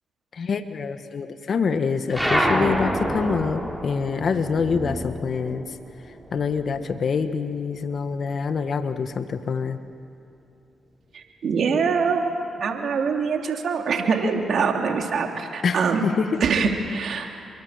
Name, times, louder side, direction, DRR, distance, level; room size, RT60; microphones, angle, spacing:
voice 1, 0.3-5.8 6.3-9.8 15.6-16.4, left 5 dB, 60° left, 9 dB, 1.5 m, -26 dB
sound 1, 2.1-7.0 7.3-8.7, equal, ahead, 4.7 m, -28 dB
voice 2, 11.1-12.3 12.6-16.1 16.4-17.4, right 5 dB, 65° right, 3 dB, 2.9 m, -24 dB
28.5 x 23.5 x 7.5 m, 2.7 s
supercardioid pair, 50°, 0 cm